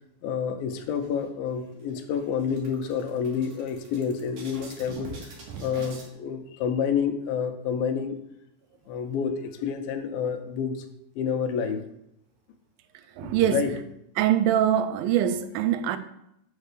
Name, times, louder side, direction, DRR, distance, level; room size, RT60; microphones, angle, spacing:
voice 1, 0.2-8.2 8.9-10.8 11.2-11.8 13.2-13.7, left 7 dB, 90° left, 2.6 m, -29 dB
sound 1, 0.8-1.5 1.9-2.0 2.3-6.1, right 4 dB, 65° right, 3.1 m, -43 dB
voice 2, 13.2-13.7 14.2-16.0, right 10 dB, 90° right, 2.4 m, -23 dB
6.5 x 5.6 x 6.7 m
omnidirectional pair, 4.0 m